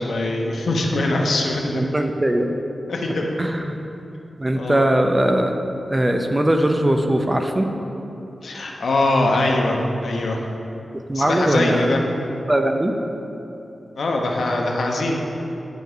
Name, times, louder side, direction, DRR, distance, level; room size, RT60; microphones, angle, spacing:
voice 1, 0.0-1.8 2.9-3.3 4.6-4.9 8.4-10.4 11.1-12.0 13.9-15.2, left 2 dB, 75° left, 0 dB, 0.9 m, -22 dB
voice 2, 1.7-2.5 3.4-3.8 4.4-5.5 5.9-7.7 11.1-11.9 12.5-12.9, right 1 dB, 20° right, 5 dB, 0.5 m, -20 dB
10.5 x 5.3 x 3.9 m, 3.0 s
wide cardioid pair, 95°, 0 cm